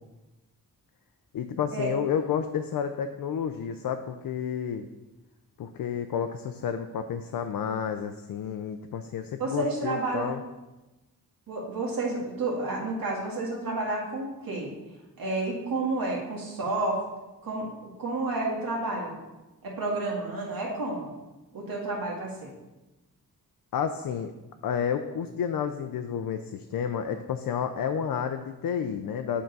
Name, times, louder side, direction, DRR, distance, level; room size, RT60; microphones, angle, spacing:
voice 1, 1.3-4.9 5.6-10.4 23.7-24.3 24.6-29.4, left 8 dB, 70° left, 7 dB, 0.5 m, -30 dB
voice 2, 9.4-10.3 11.5-14.7 15.2-17.0 17.4-17.7 18.0-19.2 19.6-21.1 21.5-22.5, right 2 dB, 70° right, -3 dB, 2.0 m, -30 dB
7.9 x 3.8 x 5.3 m, 1.1 s
wide cardioid pair, 115°, 36 cm